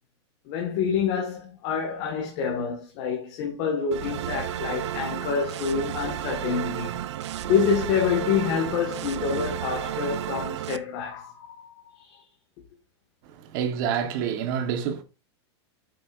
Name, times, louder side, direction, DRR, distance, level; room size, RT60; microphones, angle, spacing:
voice 1, 0.5-7.0 7.4-12.2, left 6 dB, 40° left, 2.0 m, -27 dB
sound 1, 3.9-10.8, right 12 dB, 75° right, 0.7 m, -32 dB
voice 2, 13.3-15.0, right 8 dB, 45° right, 1.5 m, -28 dB
8.3 x 7.8 x 2.7 m
supercardioid pair, 165°, 15 cm